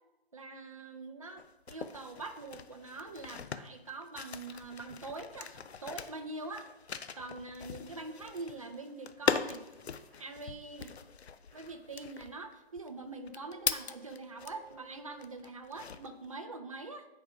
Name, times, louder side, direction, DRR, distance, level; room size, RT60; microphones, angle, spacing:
voice 1, 0.3-6.7 7.1-9.6 10.2-10.9 11.5-17.1, right 3 dB, 35° right, 6 dB, 0.5 m, -44 dB
sound 1, 1.4-14.8 15.2-16.3, left 6 dB, 90° left, 0.6 m, -40 dB
sound 2, 7.8-10.5 10.9-12.3 12.7-12.8 13.2-15.2, right 4 dB, 15° left, 2.6 m, -59 dB
10.0 x 4.5 x 3.4 m, 0.99 s
hypercardioid pair, 170°, 31 cm